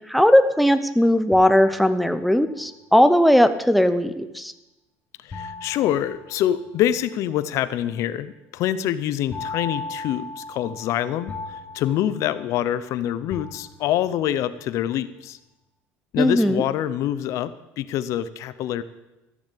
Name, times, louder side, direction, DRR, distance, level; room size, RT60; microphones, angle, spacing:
voice 1, 0.1-4.5 16.2-16.6, equal, ahead, 10 dB, 0.7 m, -18 dB
sound 1, 1.3-2.5 5.3-6.9 9.3-12.9 13.3-14.2, left 3 dB, 25° left, 1.2 m, -37 dB
voice 2, 5.2-15.4 16.1-18.8, left 11 dB, 60° left, 15 dB, 0.7 m, -25 dB
13.5 x 7.1 x 8.3 m, 0.99 s
cardioid pair, 125°, 6 cm